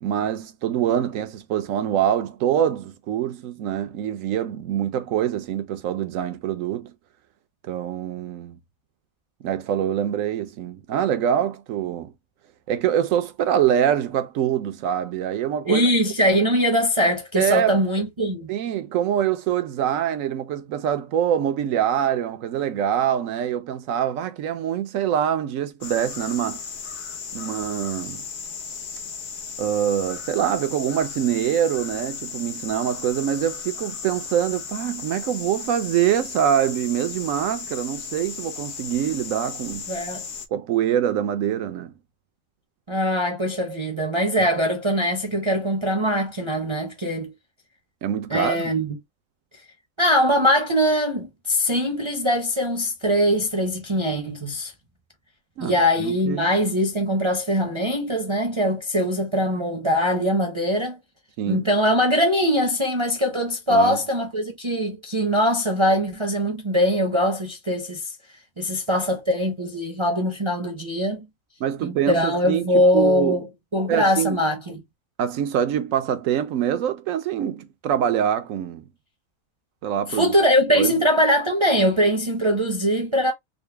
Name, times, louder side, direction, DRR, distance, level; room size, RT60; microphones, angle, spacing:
voice 1, 0.0-6.9 7.6-8.6 9.4-12.1 12.7-15.9 17.4-17.8 18.5-26.6 27.3-28.2 29.6-39.9 40.5-41.9 48.0-48.6 55.6-56.5 61.4-61.7 63.7-64.0 71.6-73.4 73.9-74.4 75.2-78.9 79.8-80.3 80.7-80.9, right 10 dB, 75° right, 1.0 m, -24 dB
voice 2, 15.6-18.5 39.9-40.2 42.9-47.3 48.3-49.0 50.0-54.7 55.6-61.0 61.5-68.1 68.6-71.3 71.8-73.4 73.7-74.8 80.1-83.3, equal, 30° right, 0.6 m, -22 dB
sound 1, 25.8-40.5, left 6 dB, 85° left, 1.3 m, -35 dB
3.9 x 2.1 x 3.2 m
omnidirectional pair, 1.4 m